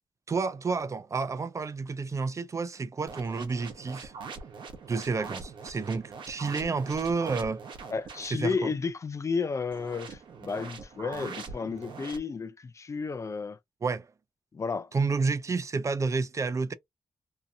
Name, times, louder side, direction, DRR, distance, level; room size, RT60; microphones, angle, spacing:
voice 1, 0.3-4.1 4.9-7.6 8.2-8.7 13.8-14.1 14.9-16.7, right 4 dB, 40° right, 0.4 m, -30 dB
sound 1, 3.1-8.3 9.7-12.2, right 5 dB, 75° right, 0.9 m, -43 dB
voice 2, 7.9-13.6 14.5-14.9, left 5 dB, 35° left, 0.3 m, -32 dB
2.7 x 2.3 x 2.7 m
cardioid pair, 60°, 8 cm